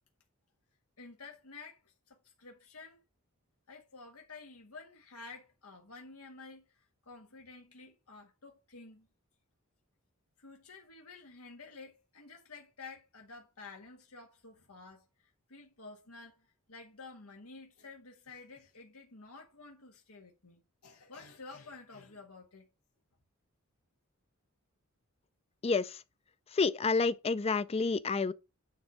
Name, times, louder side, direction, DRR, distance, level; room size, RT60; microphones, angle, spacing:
voice 1, 1.0-3.0 3.7-9.1 10.4-22.7, left 3 dB, 85° left, 1.7 m, -51 dB
voice 2, 25.6-26.0 26.5-28.3, left 4 dB, 30° left, 0.4 m, -29 dB
9.7 x 3.5 x 6.3 m
head